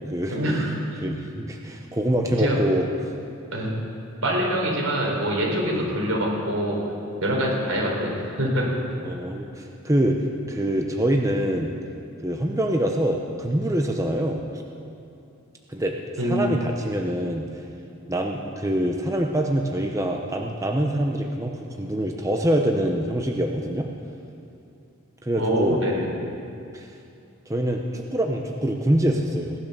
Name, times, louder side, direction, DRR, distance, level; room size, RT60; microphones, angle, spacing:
voice 1, 0.3-1.0 2.4-2.6 3.5-3.8 4.2-6.8 7.2-8.7 16.2-16.5 25.4-26.1, equal, 75° right, -2 dB, 4.0 m, -24 dB
voice 2, 1.0-2.9 5.7-5.9 9.0-11.7 12.2-14.5 15.7-15.9 16.2-17.5 18.1-23.9 25.2-25.8 26.7-26.9 27.5-29.5, right 1 dB, 15° right, 1 dB, 0.8 m, -25 dB
17.5 x 10.5 x 6.7 m, 2.6 s
head